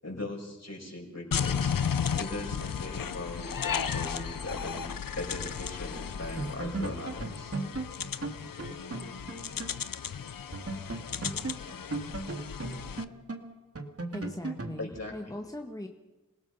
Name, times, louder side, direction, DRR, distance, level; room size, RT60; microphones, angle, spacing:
voice 1, 0.0-1.8 2.1-4.8 5.1-7.6 14.8-15.4, left 2 dB, 50° left, 0 dB, 6.4 m, -39 dB
sound 1, 1.3-13.0, left 7 dB, 90° left, 0.7 m, -34 dB
sound 2, 5.9-6.1 6.4-9.8 10.1-10.2 10.5-14.8, right 3 dB, 45° right, 2.4 m, -37 dB
voice 2, 14.1-15.9, left 1 dB, 10° left, 3 dB, 1.7 m, -39 dB
27.5 x 17.5 x 5.7 m, 1.1 s
wide cardioid pair, 45°, 33 cm